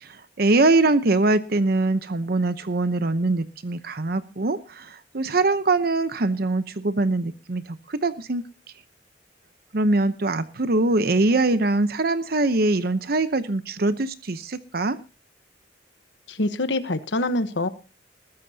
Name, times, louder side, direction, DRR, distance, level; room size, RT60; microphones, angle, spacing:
voice 1, 0.0-8.4 9.7-15.0, right 2 dB, 55° right, 12 dB, 0.8 m, -23 dB
voice 2, 16.3-17.7, left 2 dB, 80° left, 11 dB, 1.1 m, -25 dB
21.0 x 13.5 x 2.8 m, 0.32 s
head